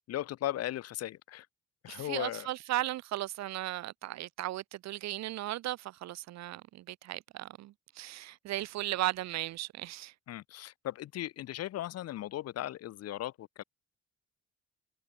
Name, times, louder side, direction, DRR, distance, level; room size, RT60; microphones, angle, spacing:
voice 1, 0.1-1.5 1.8-2.5 10.3-13.6, left 13 dB, 55° left, 0.5 m, -37 dB
voice 2, 1.9-10.1, right 15 dB, 65° right, 0.5 m, -36 dB
cardioid pair, 90°, 30 cm